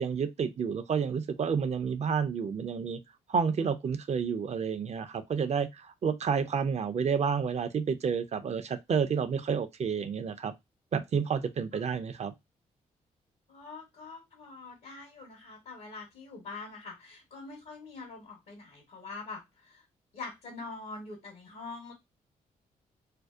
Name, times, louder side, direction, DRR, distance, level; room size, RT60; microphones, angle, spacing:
voice 1, 0.0-3.0 3.3-10.5 10.9-12.3, right 6 dB, 45° right, 0.4 m, -30 dB
voice 2, 13.5-19.8 20.1-21.9, left 3 dB, 80° left, 1.0 m, -44 dB
2.6 x 2.1 x 2.3 m
supercardioid pair, 45°, 16 cm